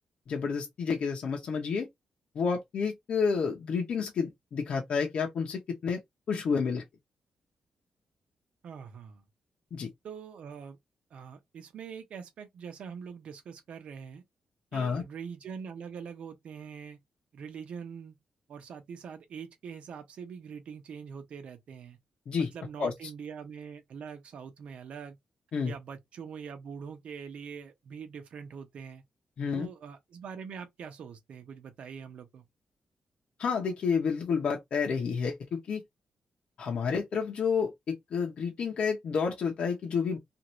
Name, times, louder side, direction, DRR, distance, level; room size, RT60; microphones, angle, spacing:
voice 1, 0.3-1.9 2.3-6.0 6.3-6.8 9.7-9.9 14.7-15.0 22.3-22.5 22.8-22.9 25.5-25.7 29.4-29.7 33.4-35.8 36.6-40.2, left 5 dB, 60° left, 0.8 m, -30 dB
voice 2, 8.6-9.2 10.0-10.8 11.1-14.2 14.7-17.0 17.3-18.2 18.5-22.0 22.4-25.2 25.6-29.0 29.5-32.4, right 6 dB, 70° right, 0.9 m, -43 dB
2.7 x 2.6 x 3.0 m
cardioid pair, 125°, 2 cm